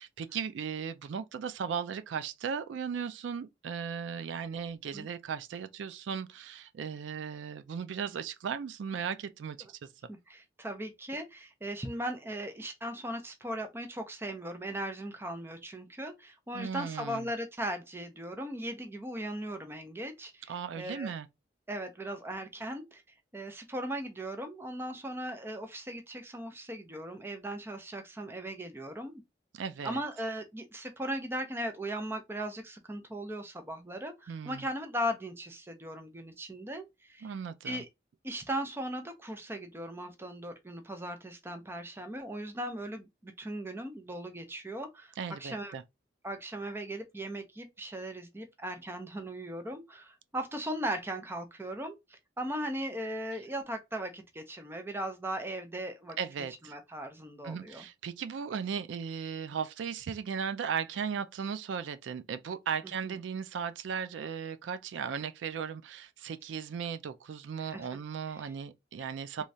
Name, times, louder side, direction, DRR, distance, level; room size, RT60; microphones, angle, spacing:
voice 1, 0.0-9.9 16.5-17.3 20.5-21.3 29.5-30.0 34.3-34.7 37.2-37.8 45.2-45.8 56.2-56.7 57.4-69.4, right 7 dB, 85° right, 0.3 m, -37 dB
voice 2, 10.1-21.1 21.7-23.0 23.3-29.2 29.8-37.3 37.6-37.9 38.2-45.1 45.4-45.7 46.2-56.2 56.7-57.9 63.0-63.2 67.6-67.9 68.3-68.5, right 1 dB, 15° right, 0.5 m, -38 dB
3.1 x 2.3 x 2.6 m
head